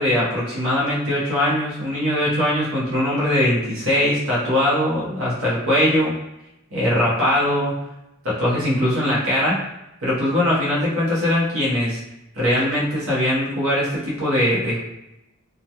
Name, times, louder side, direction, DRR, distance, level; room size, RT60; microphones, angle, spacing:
voice 1, 0.0-6.1 6.7-7.8 8.2-9.6 10.0-12.0 12.3-14.8, left 1 dB, 80° right, -7 dB, 0.8 m, -21 dB
2.2 x 2.2 x 2.7 m, 0.90 s
head